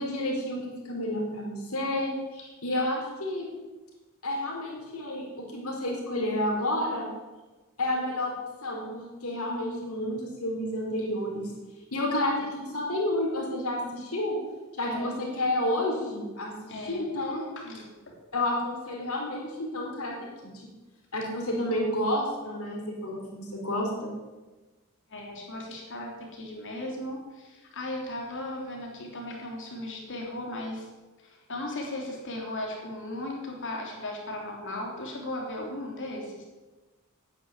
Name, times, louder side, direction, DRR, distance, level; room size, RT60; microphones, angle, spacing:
voice 1, 0.0-3.5 4.2-7.1 7.8-8.3 8.6-11.5 11.9-14.4 14.8-17.5 18.3-20.2 20.4-20.7 21.1-24.1, left 1 dB, 75° left, -1 dB, 4.5 m, -30 dB
voice 2, 14.8-15.2 16.7-17.0 17.5-18.2 25.1-30.9 31.2-36.4, left 1 dB, 60° left, 0 dB, 3.4 m, -37 dB
10.0 x 9.9 x 9.8 m, 1.2 s
head